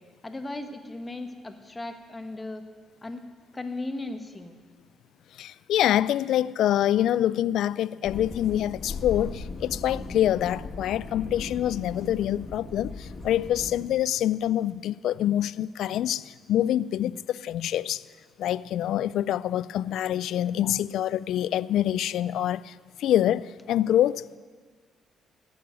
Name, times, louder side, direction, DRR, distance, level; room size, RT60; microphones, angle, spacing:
voice 1, 0.2-2.6 3.0-3.2 3.5-4.5, left 2 dB, 20° left, 1.4 m, -36 dB
voice 2, 5.3-18.0 18.4-24.4, left 11 dB, 80° left, 0.3 m, -26 dB
sound 1, 8.0-13.9, left 3 dB, 45° left, 2.1 m, -38 dB
15.0 x 7.1 x 9.2 m
cardioid pair, 90°, 0 cm